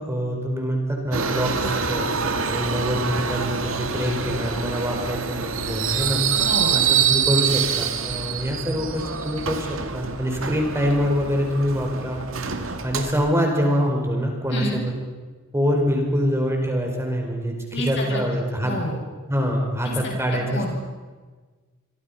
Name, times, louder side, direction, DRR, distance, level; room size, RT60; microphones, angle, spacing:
voice 1, 0.0-6.2 6.7-9.7 9.9-12.6 12.8-14.9 15.5-18.7 19.3-20.7, equal, 15° right, 1 dB, 5.0 m, -25 dB
Subway metro underground, 1.1-13.1, right 7 dB, 75° right, 2.2 m, -26 dB
voice 2, 6.5-6.8 14.5-14.8 17.7-18.2 18.6-19.0 19.8-20.2 20.5-20.7, left 1 dB, 60° left, 0 dB, 7.4 m, -29 dB
27.5 x 25.0 x 5.8 m, 1.4 s
head